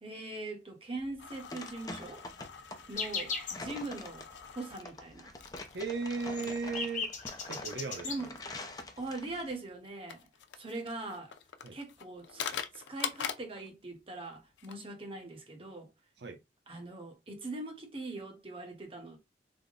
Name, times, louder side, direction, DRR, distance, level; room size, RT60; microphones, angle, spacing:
voice 1, 0.0-2.2 2.9-4.3 4.5-5.3 8.0-8.4 9.0-10.2 10.6-11.3 11.7-15.9 16.7-19.2, right 2 dB, 30° right, 1.0 m, -41 dB
sound 1, 1.0-9.6, left 2 dB, 20° left, 0.5 m, -46 dB
sound 2, 1.2-13.7 13.9-14.0 14.3-14.7, left 8 dB, 90° left, 0.5 m, -44 dB
sound 3, 2.9-3.7 4.0-4.1 4.4-4.7 5.1-5.2 5.5-8.2 9.0-9.1 9.3-9.5, left 4 dB, 45° left, 0.8 m, -38 dB
voice 2, 5.7-7.1 7.5-8.3 11.6-11.8 16.2-16.4, right 4 dB, 75° right, 0.7 m, -36 dB
3.6 x 2.1 x 3.8 m
head